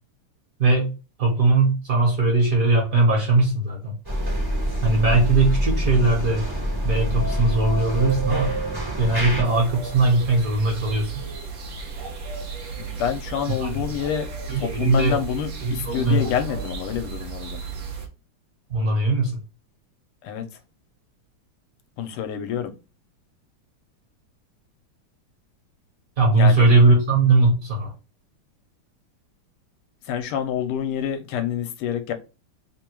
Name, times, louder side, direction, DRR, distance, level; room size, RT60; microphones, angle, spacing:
voice 1, 0.6-0.9 1.2-3.9 4.8-6.4 6.8-8.5 9.0-11.2 13.6-13.8 14.5-15.2 15.6-16.3 18.7-19.4 26.2-27.9, right 3 dB, 50° right, 1.2 m, -19 dB
sound 1, 4.0-9.4, equal, 20° right, 0.6 m, -25 dB
sound 2, 9.4-18.1, right 5 dB, 75° right, 0.7 m, -34 dB
voice 2, 12.8-14.3 14.6-17.6 20.2-20.5 22.0-22.7 26.4-26.7 30.1-32.1, left 9 dB, 80° left, 1.5 m, -27 dB
3.6 x 2.2 x 4.4 m
omnidirectional pair, 2.4 m